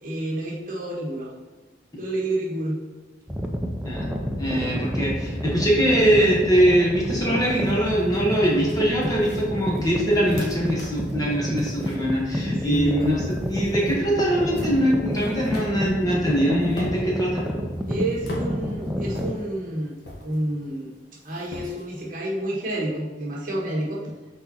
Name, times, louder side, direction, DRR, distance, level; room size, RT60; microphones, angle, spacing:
voice 1, 0.0-1.3 2.0-2.8 12.6-13.2 17.8-19.9 20.2-20.9 21.2-24.1, right 1 dB, 45° right, -4 dB, 1.5 m, -29 dB
sound 1, 3.3-19.3, equal, 5° right, 0.5 m, -29 dB
voice 2, 4.4-17.5, right 1 dB, 20° left, -4 dB, 1.3 m, -22 dB
sound 2, 7.1-22.1, left 1 dB, 55° left, 1.2 m, -42 dB
5.9 x 4.1 x 4.1 m, 1.4 s
head